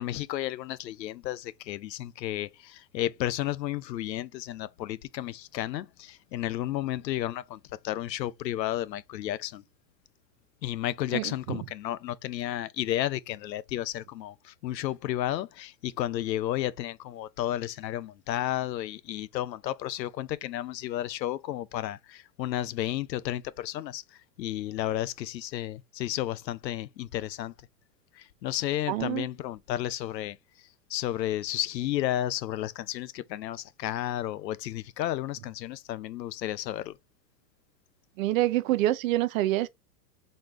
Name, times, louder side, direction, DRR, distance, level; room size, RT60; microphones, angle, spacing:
voice 1, 0.0-9.6 10.6-24.0 24.4-27.5 28.1-30.4 30.9-37.0, left 13 dB, 80° left, 0.7 m, -32 dB
voice 2, 11.1-11.6 28.9-29.3 38.2-39.7, right 15 dB, 55° right, 0.7 m, -26 dB
4.2 x 3.2 x 3.7 m
hypercardioid pair, 110°, 50 cm